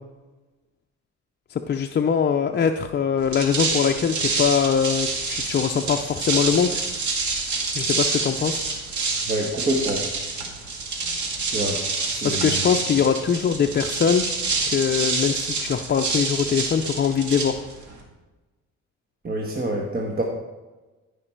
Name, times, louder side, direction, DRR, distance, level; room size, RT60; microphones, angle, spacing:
voice 1, 1.5-6.8 7.7-8.7 12.2-14.3 14.7-17.6, left 7 dB, 35° left, 4 dB, 0.5 m, -22 dB
sound 1, 3.2-18.0, right 3 dB, 70° right, 2.0 m, -27 dB
voice 2, 9.3-10.0 11.5-11.8 12.1-12.6 19.2-20.2, right 1 dB, 30° right, 0 dB, 1.3 m, -26 dB
14.0 x 5.1 x 4.5 m, 1.2 s
cardioid pair, 90°, 30 cm